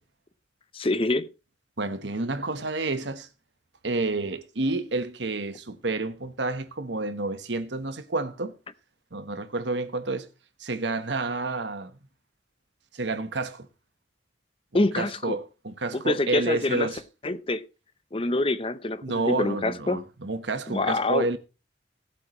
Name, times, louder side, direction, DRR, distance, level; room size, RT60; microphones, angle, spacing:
voice 1, 0.7-1.3 14.7-15.4 15.9-16.9 17.2-17.6 18.1-20.0 20.7-21.3, left 2 dB, 30° left, 0.8 m, -26 dB
voice 2, 1.8-3.3 3.8-8.6 9.1-10.3 10.6-11.9 12.9-13.7 14.7-17.0 19.0-21.4, right 2 dB, 75° right, 1.2 m, -29 dB
18.5 x 8.3 x 3.1 m
head